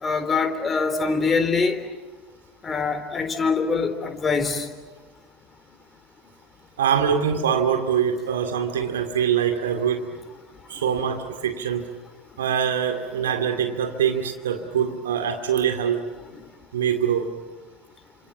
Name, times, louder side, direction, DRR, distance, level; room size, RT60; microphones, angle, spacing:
voice 1, 0.0-1.8 2.6-4.7, left 4 dB, 25° left, 7 dB, 3.9 m, -23 dB
voice 2, 6.8-10.0 10.7-11.9 12.4-16.0 16.7-17.3, right 8 dB, 70° right, 6 dB, 2.4 m, -23 dB
29.5 x 27.0 x 7.5 m, 1.3 s
figure-of-eight pair, 70°, 0 cm